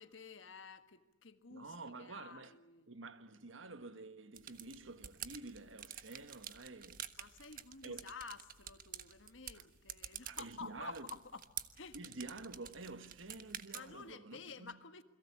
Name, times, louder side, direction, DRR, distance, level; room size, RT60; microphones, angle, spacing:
voice 1, 0.0-2.9 7.2-11.4 11.7-12.0 13.7-15.0, left 4 dB, 75° left, 1.6 m, -51 dB
voice 2, 1.5-2.6 2.9-7.1 7.8-8.1 9.5-9.6 10.3-11.1 11.9-14.8, right 3 dB, 80° right, 1.6 m, -49 dB
sound 1, 4.3-14.1, right 10 dB, 45° right, 1.4 m, -50 dB
29.0 x 22.5 x 8.4 m
head